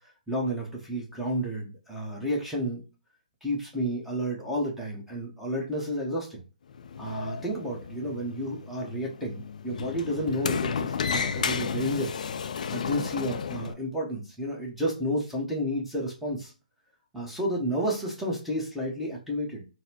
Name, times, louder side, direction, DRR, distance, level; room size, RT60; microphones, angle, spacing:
voice 1, 0.3-2.8 3.4-6.4 7.0-12.1 12.7-16.5 17.1-19.7, equal, ahead, -4 dB, 0.9 m, -31 dB
Sliding door, 6.7-13.7, left 6 dB, 60° left, 0.3 m, -33 dB
4.0 x 2.1 x 2.8 m, 0.32 s
hypercardioid pair, 145°, 5 cm